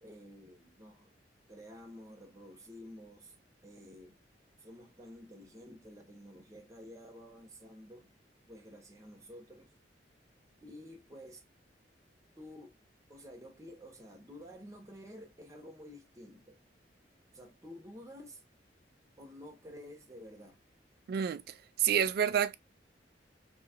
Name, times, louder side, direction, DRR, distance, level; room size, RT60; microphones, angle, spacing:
voice 1, 0.0-1.1 1.5-3.3 3.6-4.2 4.6-8.1 8.5-9.7 10.6-11.4 12.4-12.8 13.1-16.6 17.3-18.4 19.2-20.6, equal, 20° right, 0.8 m, -51 dB
voice 2, 21.1-22.5, right 8 dB, 60° right, 0.3 m, -29 dB
2.8 x 2.4 x 2.7 m
head